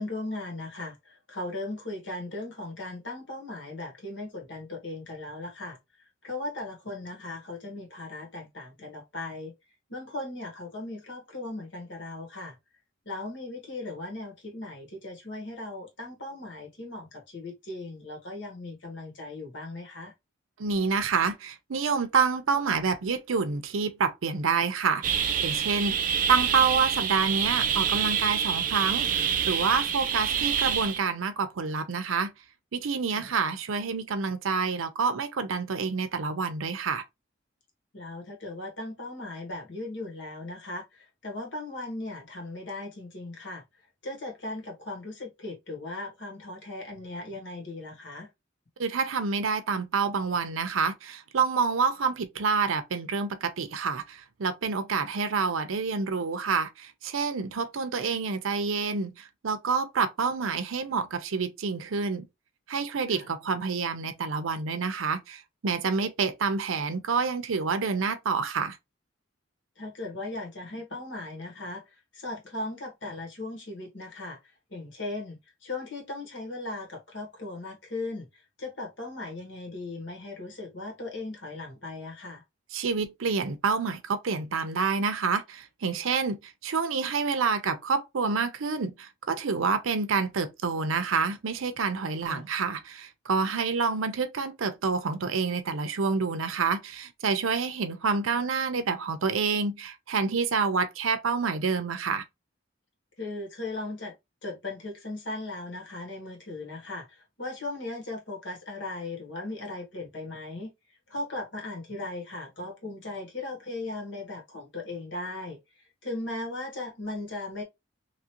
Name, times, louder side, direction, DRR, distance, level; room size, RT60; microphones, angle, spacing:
voice 1, 0.0-9.5 9.9-12.5 13.0-20.1 33.1-33.3 37.9-43.6 44.0-48.3 63.1-63.3 69.8-74.4 74.7-82.4 92.3-92.4 103.2-104.1 104.4-110.7 111.1-115.6 116.0-117.6, left 2 dB, 60° left, 1.3 m, -38 dB
voice 2, 20.6-26.0 26.3-32.3 32.7-37.0 48.8-62.3 62.7-68.8 82.7-102.2, right 5 dB, 90° right, 0.6 m, -28 dB
sound 1, 25.0-31.0, right 7 dB, 40° right, 0.3 m, -27 dB
3.0 x 2.5 x 2.9 m
head